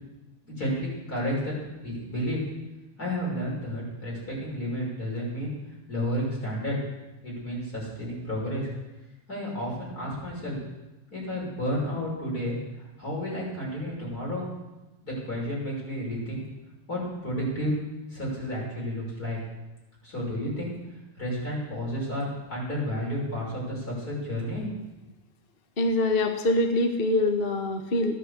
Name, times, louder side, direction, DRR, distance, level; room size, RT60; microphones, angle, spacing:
voice 1, 0.4-1.5 1.8-2.4 3.0-5.5 5.9-6.8 7.2-8.7 9.3-10.6 11.1-12.6 13.0-14.5 15.0-16.4 16.9-17.8 18.1-19.4 20.0-20.8 21.2-24.7, equal, 25° left, -4 dB, 6.3 m, -31 dB
voice 2, 25.8-28.2, left 2 dB, 50° left, 5 dB, 0.6 m, -24 dB
15.5 x 9.9 x 8.2 m, 1.0 s
omnidirectional pair, 3.6 m